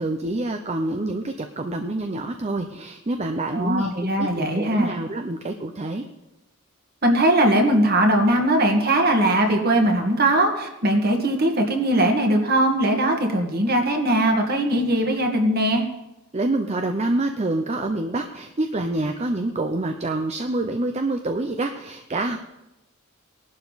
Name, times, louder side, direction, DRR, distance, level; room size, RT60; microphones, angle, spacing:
voice 1, 0.0-3.9 4.2-6.1 16.3-22.4, right 2 dB, 30° right, 6 dB, 0.7 m, -26 dB
voice 2, 3.5-4.9 7.0-15.8, right 1 dB, 45° right, 3 dB, 1.9 m, -20 dB
19.0 x 11.5 x 4.1 m, 0.96 s
head